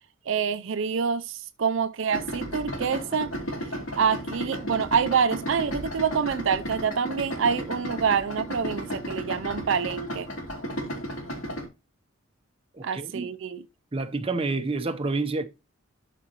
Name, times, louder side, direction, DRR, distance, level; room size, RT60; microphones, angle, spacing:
voice 1, 0.3-3.3 4.0-10.3 12.8-13.6, right 6 dB, 60° right, 0.4 m, -26 dB
Idling, 2.1-11.7, equal, 75° left, 2.8 m, -34 dB
voice 2, 12.7-13.3 13.9-15.5, right 3 dB, 25° right, 0.7 m, -28 dB
12.5 x 5.0 x 2.9 m
head